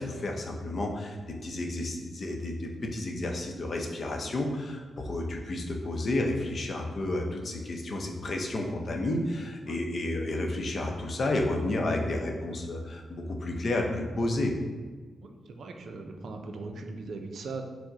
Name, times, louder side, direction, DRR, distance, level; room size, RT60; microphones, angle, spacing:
voice 1, 0.0-14.5, left 2 dB, 55° left, 2 dB, 0.6 m, -31 dB
voice 2, 15.2-17.6, right 3 dB, 70° right, 4 dB, 0.4 m, -39 dB
4.5 x 2.1 x 3.7 m, 1.4 s
supercardioid pair, 55°, 0 cm